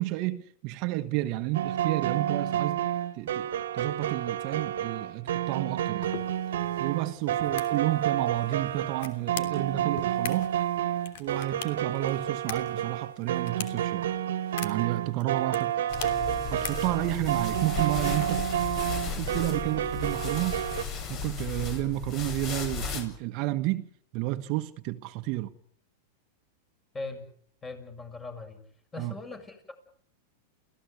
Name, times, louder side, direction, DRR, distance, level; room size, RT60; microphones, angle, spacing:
voice 1, 0.0-2.8 3.1-6.1 6.8-10.5 11.2-14.1 14.6-15.9 16.5-18.5 19.1-20.6 21.1-25.5 29.0-29.1, right 17 dB, 50° right, 1.3 m, -31 dB
sound 1, 1.5-20.8, right 11 dB, 80° right, 1.7 m, -30 dB
sound 2, 6.0-18.9, left 9 dB, 70° left, 3.1 m, -44 dB
sound 3, 15.9-23.0, left 5 dB, 40° left, 7.9 m, -35 dB
voice 2, 26.9-27.3 27.6-28.6 28.9-29.7, left 3 dB, 20° left, 7.4 m, -40 dB
29.5 x 17.5 x 8.3 m
hypercardioid pair, 125°, 0 cm